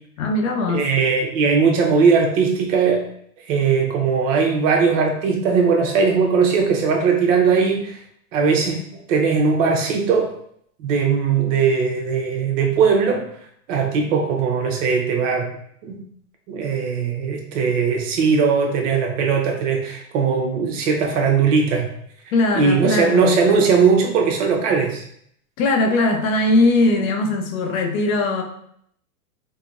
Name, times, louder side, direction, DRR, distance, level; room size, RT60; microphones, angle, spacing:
voice 1, 0.2-0.9 22.3-23.4 25.6-28.4, left 2 dB, 60° left, 4 dB, 0.6 m, -20 dB
voice 2, 0.7-3.0 3.5-8.0 8.3-8.8 9.1-10.3 10.8-13.3 13.7-15.5 15.8-16.0 16.5-21.9 22.6-25.0, right 5 dB, 55° right, 2 dB, 0.7 m, -19 dB
3.7 x 2.0 x 2.5 m, 0.68 s
hypercardioid pair, 125°, 46 cm